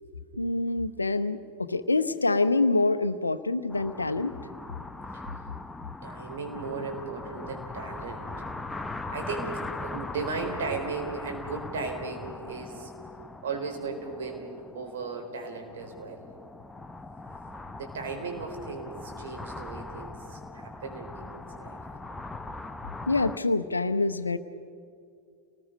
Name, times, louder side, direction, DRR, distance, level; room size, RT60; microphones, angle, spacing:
voice 1, 0.4-4.4 23.1-24.4, left 3 dB, 80° left, 11 dB, 0.8 m, -26 dB
sound 1, 3.7-23.4, left 2 dB, 10° left, 0.8 m, -40 dB
voice 2, 6.0-8.3 9.1-12.9 13.4-16.3 17.8-21.8, right 4 dB, 60° right, 3 dB, 4.3 m, -36 dB
29.5 x 19.5 x 5.4 m, 2.4 s
figure-of-eight pair, 90°, 0 cm